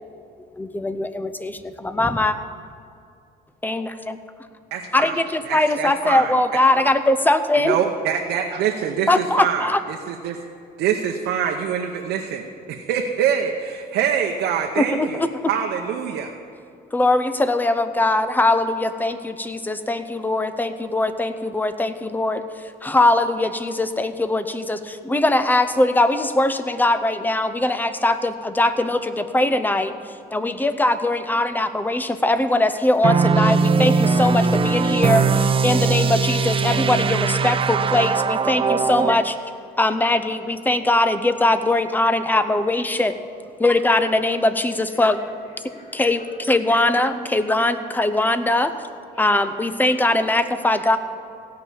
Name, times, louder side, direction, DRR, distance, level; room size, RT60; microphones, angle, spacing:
voice 1, 0.6-2.4 3.6-4.2 4.9-7.8 9.1-9.8 14.8-15.1 16.9-39.4 39.8-43.2 43.6-45.2 45.9-48.7 49.2-51.0, left 2 dB, 10° left, 11 dB, 0.7 m, -21 dB
voice 2, 4.7-5.2 5.4-6.3 7.6-10.4 10.8-16.3, right 8 dB, 80° right, 1 dB, 0.9 m, -25 dB
sound 1, 33.0-39.2, right 5 dB, 30° right, 0.5 m, -20 dB
voice 3, 34.9-35.3 35.7-36.1 37.3-37.6 38.7-38.9 39.2-39.3 39.7-39.8 40.1-40.2 40.7-40.9 42.2-42.7 43.8-44.1 44.9-45.9 46.2-46.3 47.3-48.1 48.5-48.7 49.1-49.3 49.5-49.7 50.0-50.1 50.6-50.8, left 1 dB, 45° left, -8 dB, 3.7 m, -46 dB
16.0 x 5.8 x 8.4 m, 2.4 s
cardioid pair, 110°, 17 cm